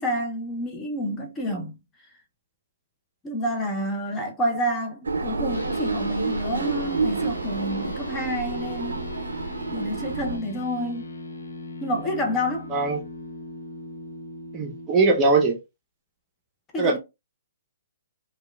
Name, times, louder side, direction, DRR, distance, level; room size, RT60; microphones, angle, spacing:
voice 1, 0.0-1.7 3.2-9.1 9.7-11.1 11.8-12.7 16.7-17.0, equal, 15° left, 0.6 m, -29 dB
sound 1, 5.0-10.4, right 3 dB, 85° right, 0.4 m, -29 dB
sound 2, 5.5-14.9, left 2 dB, 85° left, 0.6 m, -39 dB
voice 2, 14.5-15.6 16.8-17.0, right 3 dB, 25° right, 0.6 m, -21 dB
2.9 x 2.2 x 2.2 m
hypercardioid pair, 135°, 0 cm